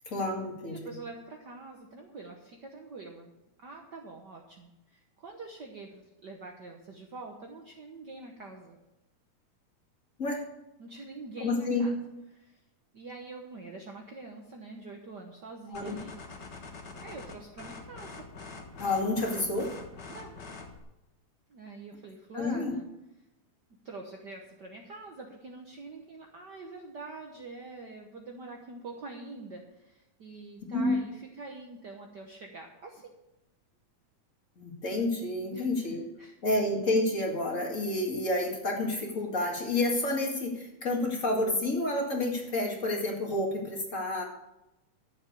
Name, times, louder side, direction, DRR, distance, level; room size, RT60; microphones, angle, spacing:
voice 1, 0.1-1.0 10.2-10.4 11.4-11.9 15.7-16.0 18.8-19.7 22.3-22.7 30.7-31.0 34.6-36.0 36.4-44.2, left 2 dB, 30° left, 0 dB, 1.9 m, -29 dB
voice 2, 0.6-3.3 3.6-8.8 10.8-12.0 12.3-12.6 12.9-16.1 17.0-18.3 20.1-20.4 21.5-22.8 23.8-33.1 35.5-35.7 36.2-36.3, right 3 dB, 85° right, 1 dB, 0.9 m, -45 dB
sound 1, 15.7-20.8, left 3 dB, 45° left, 1.6 m, -45 dB
12.5 x 7.5 x 6.7 m, 0.93 s
omnidirectional pair, 3.6 m